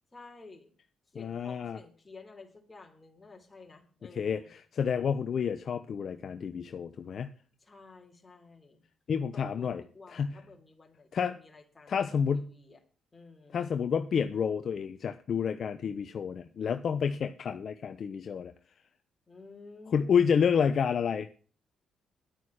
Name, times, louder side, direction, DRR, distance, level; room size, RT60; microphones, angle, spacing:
voice 1, 0.1-0.7 1.1-4.5 7.6-8.8 9.3-12.0 12.3-12.8 13.1-13.6 19.3-20.1, left 3 dB, 20° left, 3 dB, 3.3 m, -52 dB
voice 2, 1.1-1.8 4.2-7.3 9.1-9.8 10.1-10.4 11.1-11.3 11.9-12.5 13.5-18.5 19.9-21.3, left 7 dB, 55° left, 8 dB, 0.9 m, -29 dB
10.5 x 9.2 x 6.3 m, 0.41 s
cardioid pair, 90°, 0 cm